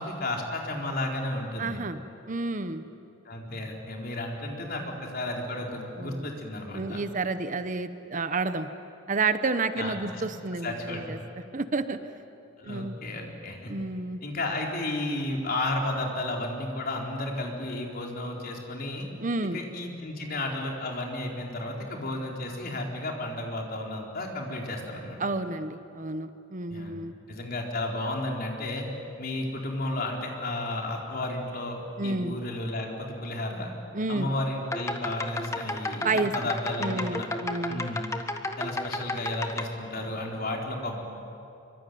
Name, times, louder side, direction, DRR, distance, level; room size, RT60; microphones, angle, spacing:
voice 1, 0.0-1.8 3.2-7.0 9.8-10.2 10.6-11.2 12.6-13.7 14.2-19.1 19.5-25.2 26.7-26.9 27.3-28.8 29.2-33.7 34.1-37.3 37.7-38.1 38.6-41.0, left 1 dB, 50° left, 0 dB, 4.3 m, -33 dB
voice 2, 1.6-2.0 2.3-2.9 6.0-6.3 6.7-8.7 9.1-11.2 11.5-12.0 12.6-13.0 13.7-14.2 19.2-19.6 25.2-27.1 32.0-32.4 33.9-34.3 36.0-36.3 36.8-37.8, right 3 dB, 40° right, 11 dB, 1.0 m, -30 dB
sound 1, 34.6-39.6, left 2 dB, 15° left, 1.4 m, -33 dB
25.5 x 24.5 x 9.4 m, 2.6 s
head